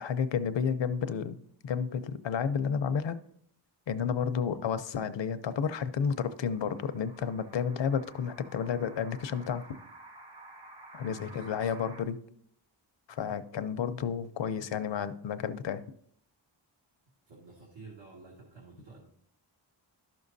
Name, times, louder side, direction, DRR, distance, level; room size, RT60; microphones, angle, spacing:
voice 1, 0.0-1.4 1.6-3.2 3.9-9.7 10.9-12.2 13.1-15.8, left 7 dB, 70° left, 12 dB, 0.7 m, -31 dB
sound 1, 6.0-12.0, right 1 dB, 55° right, 1.2 m, -52 dB
voice 2, 11.0-11.6 17.3-19.1, right 3 dB, 75° right, -3 dB, 1.9 m, -50 dB
12.0 x 6.2 x 2.7 m, 0.66 s
wide cardioid pair, 75°, 45 cm